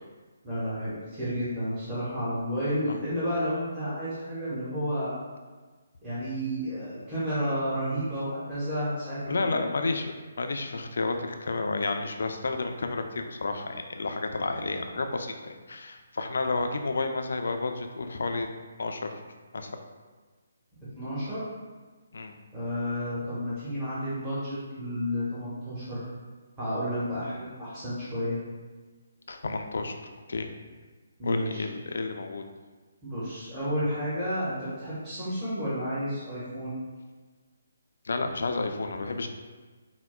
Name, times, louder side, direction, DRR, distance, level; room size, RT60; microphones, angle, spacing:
voice 1, 0.4-5.2 6.0-9.7 20.9-21.4 22.5-26.1 26.6-28.4 31.2-31.6 33.0-36.8, equal, 15° right, -13 dB, 1.0 m, -31 dB
voice 2, 9.3-18.5 18.8-19.2 19.5-19.7 22.1-22.4 29.3-30.0 30.3-30.5 31.2-32.4 38.0-39.3, left 3 dB, 70° left, 5 dB, 0.3 m, -31 dB
4.4 x 2.0 x 2.2 m, 1.4 s
figure-of-eight pair, 150°, 0 cm